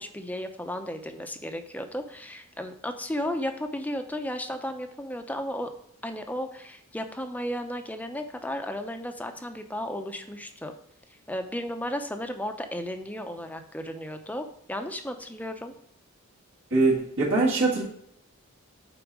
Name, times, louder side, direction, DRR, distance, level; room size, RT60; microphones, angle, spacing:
voice 1, 0.0-5.7 6.0-10.7 11.3-15.7, left 1 dB, 10° left, 6 dB, 0.7 m, -34 dB
voice 2, 16.7-17.8, right 3 dB, 65° right, -6 dB, 2.0 m, -22 dB
8.9 x 4.1 x 4.7 m, 0.74 s
head